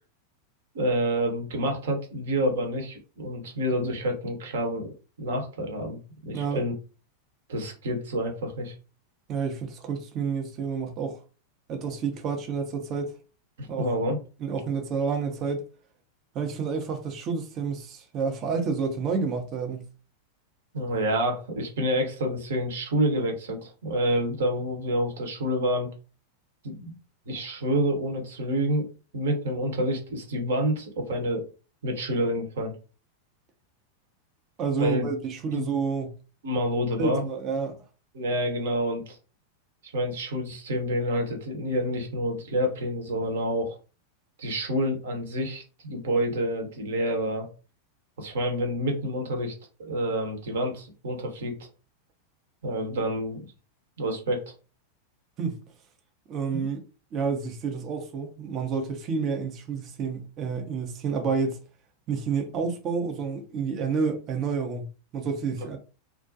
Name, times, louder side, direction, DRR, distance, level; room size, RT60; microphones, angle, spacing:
voice 1, 0.7-4.9 5.2-6.7 7.5-8.7 13.6-14.2 20.7-25.9 26.6-26.9 27.3-28.9 29.1-31.5 31.8-32.7 34.7-35.1 35.5-35.7 36.4-37.2 38.1-39.2 39.8-43.8 44.4-47.5 48.2-49.5 49.8-51.5 52.6-53.4 54.0-54.5 56.5-56.7, equal, 60° right, 0.9 m, -28 dB
voice 2, 6.3-6.7 9.3-11.2 11.7-13.2 13.7-13.9 14.4-15.6 16.3-19.9 34.6-36.2 37.0-37.8 55.4-55.6 56.3-56.8 57.1-61.6 62.1-64.9 65.1-65.8, right 5 dB, 35° right, 0.6 m, -29 dB
2.4 x 2.1 x 2.6 m
figure-of-eight pair, 90°, 0 cm